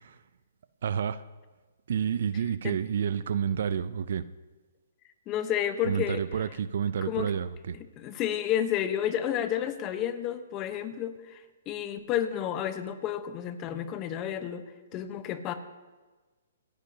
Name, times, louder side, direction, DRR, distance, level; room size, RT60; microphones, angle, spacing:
voice 1, 0.8-1.2 1.9-4.3 5.8-7.8, right 8 dB, 65° right, 15 dB, 0.5 m, -29 dB
voice 2, 5.3-6.2 7.0-7.3 8.0-14.6 14.9-15.5, left 10 dB, 25° left, 10 dB, 1.0 m, -31 dB
27.0 x 10.0 x 2.9 m, 1.3 s
hypercardioid pair, 145°, 0 cm